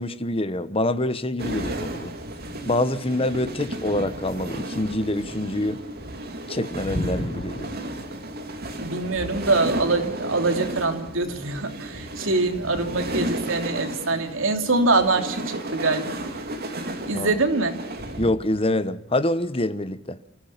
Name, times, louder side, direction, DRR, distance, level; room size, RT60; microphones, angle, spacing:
voice 1, 0.0-2.1 2.6-5.8 6.5-7.7 17.1-17.4 18.2-20.2, left 1 dB, 30° left, 1.1 m, -26 dB
sound 1, 1.4-18.3, right 1 dB, 50° right, 2.9 m, -33 dB
voice 2, 8.8-16.1 17.1-17.7, right 3 dB, 85° right, 2.9 m, -24 dB
29.5 x 15.5 x 5.8 m
head